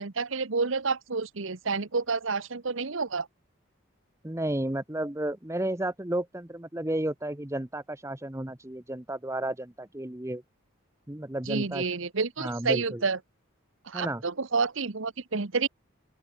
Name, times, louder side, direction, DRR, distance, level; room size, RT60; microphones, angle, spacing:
voice 1, 0.0-3.3 11.5-13.2 13.9-15.7, right 4 dB, 70° right, 1.1 m, -29 dB
voice 2, 4.2-10.4 11.1-11.8 12.4-13.0 13.9-14.2, right 1 dB, 15° right, 0.9 m, -32 dB
open air
head